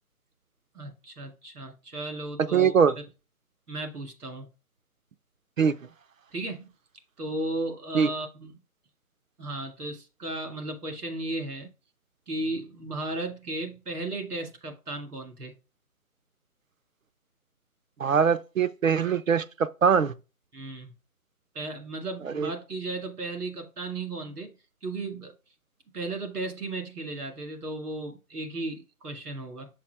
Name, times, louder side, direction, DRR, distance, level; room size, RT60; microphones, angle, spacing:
voice 1, 0.7-2.8 3.7-4.5 6.3-6.7 7.2-8.5 9.4-11.7 12.3-15.5 20.5-20.9 21.5-24.5 24.8-25.3 25.9-29.7, right 2 dB, 85° right, 2.2 m, -35 dB
voice 2, 2.5-2.9 5.6-5.7 7.9-8.1 18.0-19.4 19.8-20.1 22.4-22.5, right 7 dB, 65° right, 0.5 m, -22 dB
5.8 x 5.2 x 3.3 m
hypercardioid pair, 175°, 45 cm